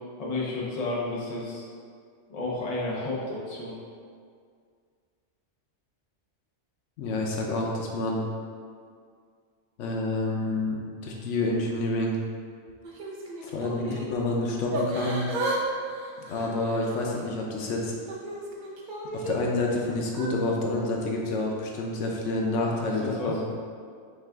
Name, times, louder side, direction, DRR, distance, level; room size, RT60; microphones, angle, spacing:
voice 1, 0.2-1.6 2.3-3.8 13.8-14.0 22.7-23.4, left 2 dB, 35° left, -5 dB, 0.8 m, -32 dB
voice 2, 7.0-8.2 9.8-12.2 13.4-15.2 16.3-17.9 19.1-23.4, left 2 dB, 90° left, -1 dB, 1.0 m, -28 dB
Yell / Crying sobbing, 12.8-14.1 14.7-15.6 15.9-17.2 17.7-19.4 20.1-20.3, right 1 dB, 50° right, 0.7 m, -34 dB
5.8 x 2.4 x 3.5 m, 2.1 s
omnidirectional pair, 1.2 m